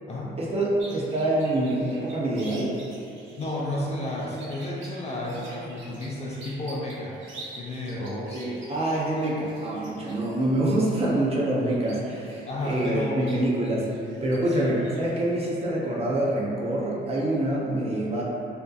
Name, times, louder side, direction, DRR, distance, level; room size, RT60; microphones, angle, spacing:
voice 1, 0.4-2.7 8.0-13.9 14.2-18.2, right 1 dB, 30° right, -5 dB, 0.6 m, -26 dB
sound 1, 0.8-15.1, right 2 dB, 75° right, 0.5 m, -48 dB
voice 2, 3.4-7.2 7.6-8.5 12.5-13.2 14.5-14.8, left 1 dB, 35° left, -4 dB, 0.3 m, -32 dB
2.6 x 2.1 x 2.3 m, 2.7 s
cardioid pair, 90°, 20 cm